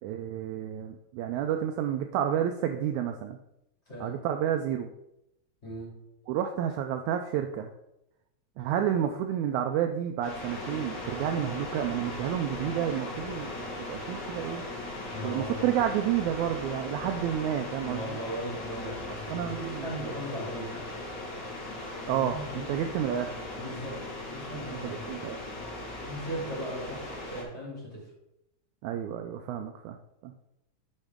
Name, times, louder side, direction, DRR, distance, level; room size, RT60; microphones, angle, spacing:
voice 1, 0.0-3.4 4.0-4.9 6.3-7.7 8.6-14.6 15.2-18.2 19.3-19.9 22.1-23.4 24.8-25.4 28.8-30.0 30.2-30.3, right 10 dB, 85° right, 6 dB, 1.6 m, -30 dB
sound 1, 10.2-27.4, left 2 dB, 60° left, 3.4 m, -38 dB
voice 2, 15.1-15.7 17.8-20.8 22.1-22.7 23.5-24.0 24.3-25.3 26.0-28.0, equal, 20° left, -6 dB, 3.0 m, -38 dB
10.5 x 4.6 x 3.6 m, 0.85 s
omnidirectional pair, 3.9 m